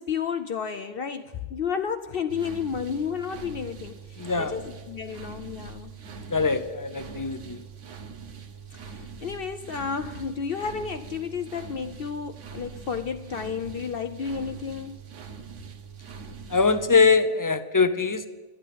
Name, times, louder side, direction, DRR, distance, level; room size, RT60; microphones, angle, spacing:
voice 1, 0.0-5.9 8.7-15.0, left 6 dB, 55° left, 0.7 m, -32 dB
sound 1, 2.3-16.9, right 6 dB, 80° right, 1.3 m, -42 dB
voice 2, 4.2-4.5 6.3-7.6 16.5-18.3, left 4 dB, 25° left, 0.4 m, -22 dB
12.5 x 9.0 x 8.5 m
omnidirectional pair, 1.3 m